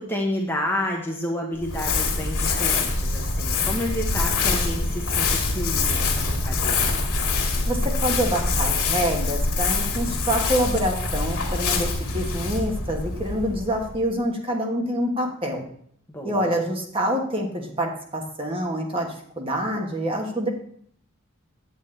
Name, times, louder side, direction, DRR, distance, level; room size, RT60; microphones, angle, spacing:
voice 1, 0.0-6.9 16.1-16.5, left 1 dB, 10° left, 0 dB, 0.9 m, -30 dB
Crumpling crinkling, 1.6-14.1, left 3 dB, 65° left, 2.1 m, -25 dB
voice 2, 7.7-11.9 12.1-15.6 16.2-19.1 19.4-20.5, equal, 25° right, 1 dB, 1.2 m, -26 dB
9.1 x 8.2 x 3.3 m, 0.63 s
head